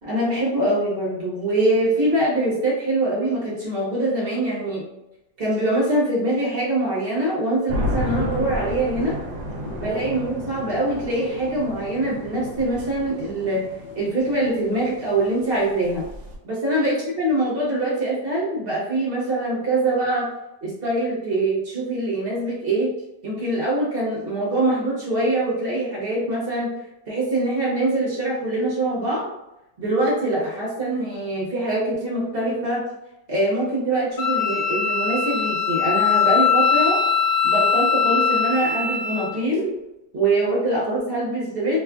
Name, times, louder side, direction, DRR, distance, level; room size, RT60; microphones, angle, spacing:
voice 1, 0.0-4.8 5.4-9.2 9.8-13.7 13.9-16.0 16.4-20.3 20.6-22.9 23.2-26.7 27.1-29.3 29.8-32.8 33.3-37.0 37.4-39.7 40.1-41.8, right 1 dB, 40° right, -6 dB, 0.9 m, -23 dB
sound 1, 7.7-16.4, equal, 70° right, 1.0 m, -32 dB
Wind instrument woodwind instrument, 34.2-39.3, left 5 dB, 75° left, 1.1 m, -21 dB
2.9 x 2.4 x 2.3 m, 0.89 s
omnidirectional pair, 1.8 m